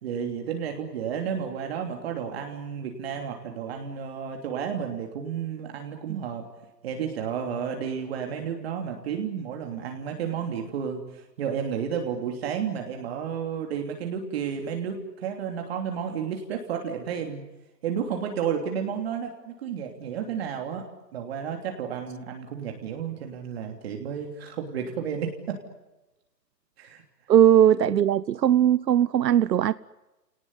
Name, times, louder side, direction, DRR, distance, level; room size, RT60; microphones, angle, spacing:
voice 1, 0.0-6.5 6.8-17.4 17.8-20.9 21.1-25.6 26.8-27.0, right 7 dB, 40° right, 3.1 m, -32 dB
voice 2, 27.3-29.7, right 10 dB, 80° right, 0.9 m, -19 dB
29.0 x 19.0 x 9.7 m
hypercardioid pair, 160°, 49 cm